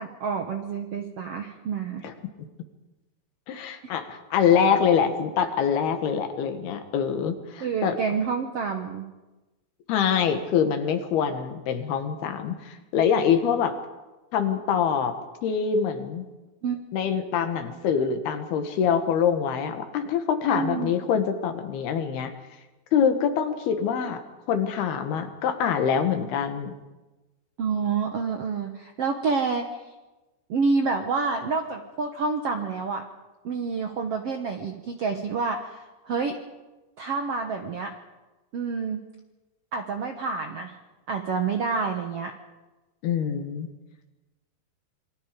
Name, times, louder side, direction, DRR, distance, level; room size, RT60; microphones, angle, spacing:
voice 1, 0.0-2.1 3.5-3.9 7.6-9.0 16.6-16.9 20.5-20.9 27.6-29.7 30.5-33.0 33.4-36.4 37.0-37.9 38.5-39.0 39.7-40.7 41.1-42.3, right 5 dB, 65° right, 4 dB, 1.5 m, -28 dB
voice 2, 3.5-8.0 9.9-13.8 14.3-15.2 15.4-16.3 16.9-22.3 22.9-24.2 24.5-26.7 43.0-43.7, left 7 dB, 75° left, 7 dB, 3.5 m, -24 dB
27.0 x 24.0 x 5.2 m, 1.1 s
omnidirectional pair, 4.6 m